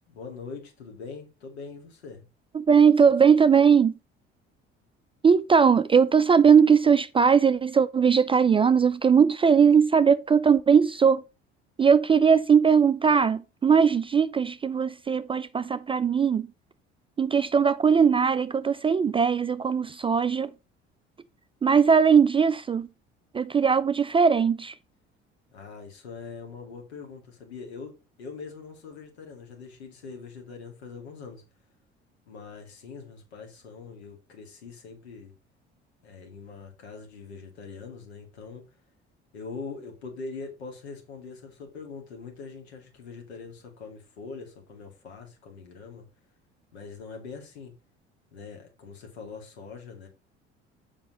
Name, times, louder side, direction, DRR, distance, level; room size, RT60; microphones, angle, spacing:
voice 1, 0.1-2.2 25.5-27.9 28.2-31.4 32.3-35.3 36.0-38.6 39.3-46.1 46.7-47.7 48.3-50.1, left 4 dB, 75° left, 2.3 m, -42 dB
voice 2, 2.5-3.9 5.2-11.2 11.8-16.5 17.2-20.5 21.6-22.9 23.3-24.7, right 6 dB, 15° right, 0.4 m, -20 dB
7.5 x 5.2 x 5.1 m
figure-of-eight pair, 55°, 32 cm